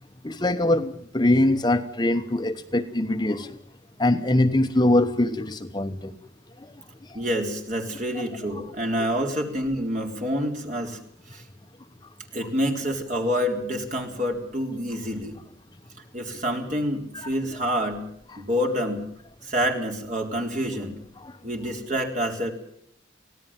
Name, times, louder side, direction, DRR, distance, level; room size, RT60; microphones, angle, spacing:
voice 1, 0.2-3.6 4.0-6.1 6.6-6.7 21.2-21.3, left 1 dB, 20° left, 7 dB, 1.1 m, -23 dB
voice 2, 7.1-11.0 11.3-11.4 12.3-15.4 16.1-18.0 18.4-19.1 19.4-21.0 21.4-22.5, equal, 40° right, 3 dB, 4.0 m, -27 dB
25.0 x 17.5 x 7.4 m, 0.70 s
head